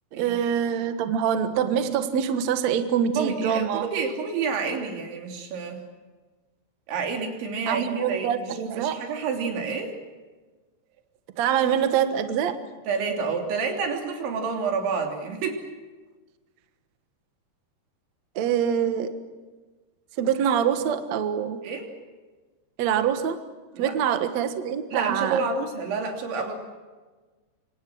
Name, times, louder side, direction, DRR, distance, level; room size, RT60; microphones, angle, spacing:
voice 1, 0.1-3.9 7.7-9.0 11.4-12.6 18.4-19.2 20.2-21.6 22.8-23.4 23.8-25.4, right 8 dB, 60° right, 8 dB, 1.9 m, -25 dB
voice 2, 3.2-5.8 6.9-8.5 8.8-9.9 12.9-15.6 21.6-21.9 23.7-23.9 24.9-26.5, right 5 dB, 85° right, 2 dB, 5.5 m, -29 dB
26.5 x 26.0 x 6.3 m, 1.3 s
omnidirectional pair, 5.2 m